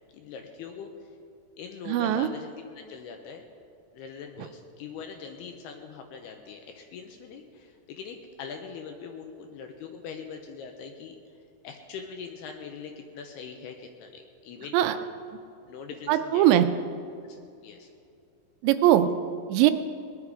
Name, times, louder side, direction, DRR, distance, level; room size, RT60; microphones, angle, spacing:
voice 1, 0.1-0.9 1.6-3.4 3.9-11.2 11.6-14.8 15.6-16.7 17.2-17.9, left 6 dB, 80° left, 4 dB, 2.5 m, -42 dB
voice 2, 1.9-2.3 14.7-15.0 16.1-16.7 18.6-19.1 19.5-19.7, right 13 dB, 80° right, 10 dB, 2.8 m, -20 dB
19.5 x 11.0 x 4.9 m, 2.5 s
omnidirectional pair, 5.3 m